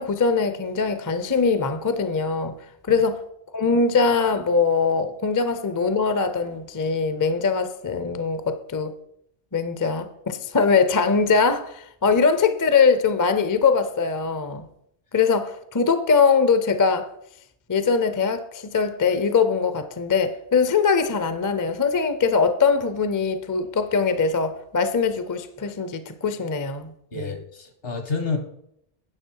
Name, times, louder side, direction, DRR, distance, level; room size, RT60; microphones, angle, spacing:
voice 1, 0.0-2.6 2.9-3.2 3.5-8.9 9.5-14.6 15.1-17.1 17.7-27.3, left 5 dB, 25° left, 0.4 m, -22 dB
voice 2, 27.1-28.4, left 4 dB, 65° left, 1.7 m, -29 dB
9.7 x 6.3 x 4.7 m
omnidirectional pair, 1.1 m